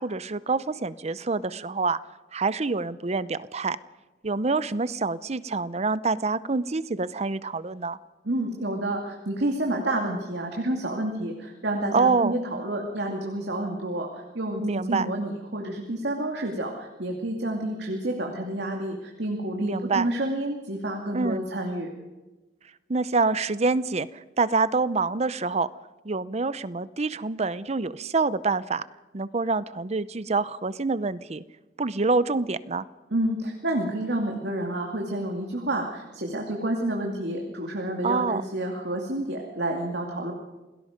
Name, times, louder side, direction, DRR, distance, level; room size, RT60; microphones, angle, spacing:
voice 1, 0.0-2.0 2.3-3.8 4.2-8.0 11.9-12.4 14.6-15.1 19.6-20.1 21.1-21.4 22.9-25.7 26.0-28.8 29.1-31.4 31.8-32.8 38.0-38.4, right 3 dB, 35° right, 16 dB, 0.7 m, -26 dB
voice 2, 8.2-21.9 33.1-40.3, right 1 dB, 70° right, 1 dB, 2.6 m, -29 dB
28.0 x 18.5 x 5.2 m, 1.2 s
head